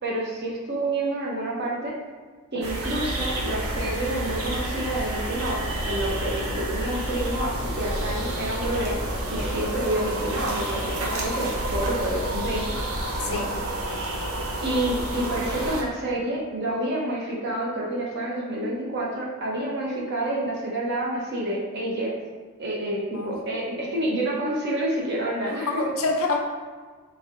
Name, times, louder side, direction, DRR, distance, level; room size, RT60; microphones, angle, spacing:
voice 1, 0.0-1.9 2.5-9.0 9.3-12.7 13.2-13.4 14.6-22.1 22.6-25.8, right 1 dB, 50° right, -4 dB, 0.9 m, -28 dB
sound 1, 2.6-15.8, right 1 dB, 75° right, 0.8 m, -29 dB
voice 2, 13.2-13.6 23.1-23.4 25.5-26.4, left 3 dB, 70° left, 2 dB, 0.6 m, -27 dB
4.5 x 3.6 x 2.6 m, 1.5 s
head